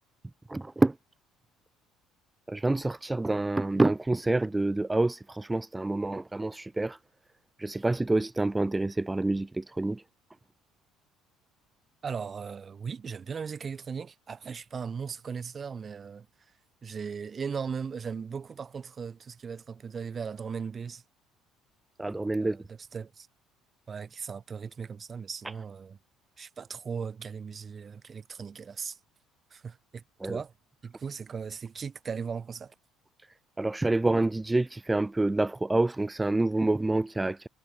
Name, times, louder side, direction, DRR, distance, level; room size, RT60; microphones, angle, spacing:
voice 1, 0.5-1.0 2.5-7.0 7.6-10.0 22.0-22.6 25.4-25.5 30.2-30.4 33.6-37.5, right 2 dB, 10° right, 0.5 m, -27 dB
voice 2, 12.0-16.3 16.8-21.0 22.4-22.6 22.9-23.3 23.9-26.0 26.4-29.0 29.5-30.5 30.8-32.7, right 6 dB, 30° right, 0.9 m, -38 dB
cardioid pair, 115°, 0 cm